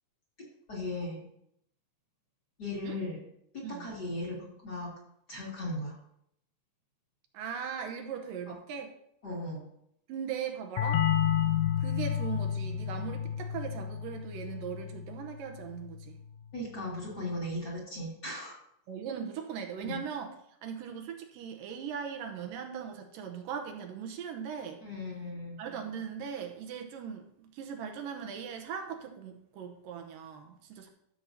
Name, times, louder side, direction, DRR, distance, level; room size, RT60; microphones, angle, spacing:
voice 1, 0.7-1.2 2.6-3.2 3.5-4.9 5.3-6.0 8.5-8.6 9.2-9.6 16.5-18.5 19.8-20.0 24.8-25.6, left 1 dB, 30° left, -5 dB, 2.5 m, -37 dB
voice 2, 7.3-8.9 10.1-11.1 11.8-16.2 18.9-20.3 20.6-24.8 25.6-30.9, right 7 dB, 80° right, 4 dB, 2.5 m, -39 dB
sound 1, 10.8-16.2, left 9 dB, 80° left, 2.1 m, -31 dB
13.0 x 7.3 x 2.8 m, 0.73 s
omnidirectional pair, 4.1 m